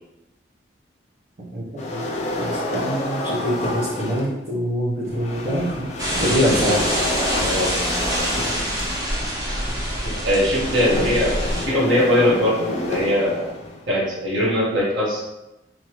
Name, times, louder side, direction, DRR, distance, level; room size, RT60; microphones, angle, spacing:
voice 1, 1.5-2.0 2.4-6.9, equal, 50° right, -9 dB, 1.0 m, -24 dB
sound 1, 1.8-4.4 5.0-13.9, left 1 dB, 35° left, 0.4 m, -29 dB
sound 2, 6.0-11.7, equal, 20° right, 0.6 m, -25 dB
voice 2, 10.0-13.5 13.9-15.2, left 1 dB, 90° right, -6 dB, 1.4 m, -21 dB
3.8 x 3.0 x 3.1 m, 0.93 s
head